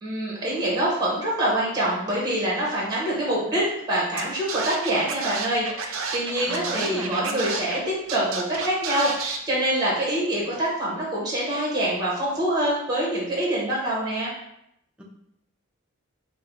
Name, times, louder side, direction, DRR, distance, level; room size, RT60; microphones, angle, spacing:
voice 1, 0.0-14.3, right 1 dB, 20° right, -4 dB, 0.8 m, -25 dB
Scratching (performance technique), 4.2-4.3 4.5-7.8 8.1-9.4, right 5 dB, 80° right, 0.4 m, -30 dB
voice 2, 6.5-7.5 15.0-15.1, equal, 5° right, -2 dB, 0.5 m, -36 dB
3.3 x 2.0 x 3.6 m, 0.76 s
head